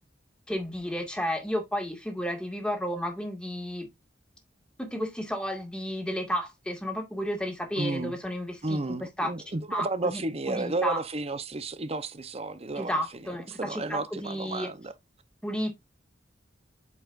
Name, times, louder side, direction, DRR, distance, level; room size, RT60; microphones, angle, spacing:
voice 1, 0.5-3.9 4.8-9.3 9.7-10.2 10.5-11.0 12.8-14.7 15.4-15.7, equal, 5° left, 1.9 m, -32 dB
voice 2, 7.8-8.2 8.6-14.9, right 2 dB, 35° right, 0.8 m, -32 dB
8.3 x 4.8 x 2.5 m
head